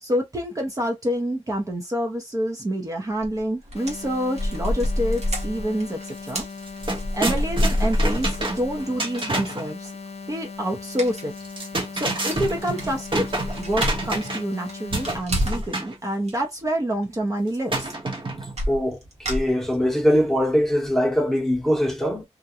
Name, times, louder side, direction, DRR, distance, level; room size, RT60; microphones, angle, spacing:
voice 1, 0.0-6.5 7.1-9.9 10.3-11.3 11.9-13.2 13.6-17.9, equal, 30° right, 0.6 m, -27 dB
sound 1, 3.2-3.4 3.7-8.8 9.2-9.3 11.0-11.3 11.6-11.7 12.0-12.1 12.3-14.2 14.5-15.7 16.1-16.3 17.5-17.6 17.8-18.2 18.6-20.0 20.4-20.5 20.9-21.0, equal, 70° right, 1.1 m, -27 dB
sound 2, 3.8-15.2, left 4 dB, 65° left, 0.6 m, -39 dB
sound 3, 6.2-6.3 6.6-9.7 11.4-14.6 14.9-16.0 17.7-18.6, right 2 dB, 45° right, 1.0 m, -28 dB
voice 2, 18.7-19.0 19.3-22.2, equal, 5° left, 0.9 m, -21 dB
2.4 x 2.2 x 2.7 m
wide cardioid pair, 100°, 11 cm